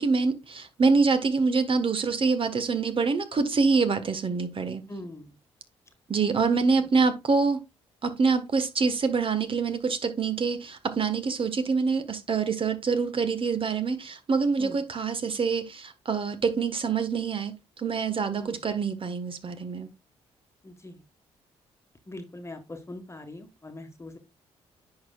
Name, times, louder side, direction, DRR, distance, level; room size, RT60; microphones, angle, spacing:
voice 1, 0.0-4.8 6.1-7.6 8.0-19.9, right 4 dB, 45° right, 1.3 m, -25 dB
voice 2, 4.9-5.4 6.4-6.9 14.6-14.8 18.4-18.6 20.6-21.0 22.1-24.2, left 1 dB, 20° left, 1.4 m, -42 dB
10.0 x 4.8 x 2.4 m
supercardioid pair, 55°, 13 cm